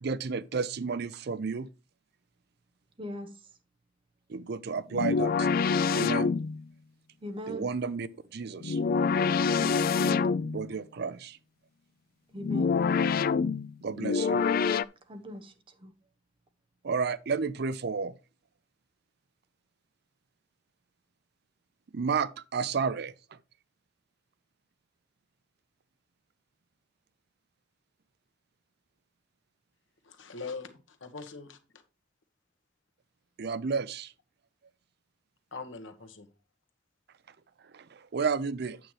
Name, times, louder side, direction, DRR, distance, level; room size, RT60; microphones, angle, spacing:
voice 1, 0.0-1.7 4.3-5.5 5.9-6.3 7.5-8.8 10.5-11.4 13.8-14.4 16.8-18.2 21.9-23.4 33.4-34.1 37.7-38.8, right 5 dB, 60° right, 0.5 m, -32 dB
voice 2, 3.0-3.4 7.2-7.7 9.6-10.3 12.3-12.8 15.1-15.9, equal, 30° right, 1.1 m, -40 dB
sound 1, 4.9-6.6 8.6-10.7 12.4-14.9, left 5 dB, 50° left, 0.3 m, -26 dB
voice 3, 30.0-31.8 35.5-36.3, left 4 dB, 80° left, 1.4 m, -42 dB
8.9 x 7.5 x 3.2 m
head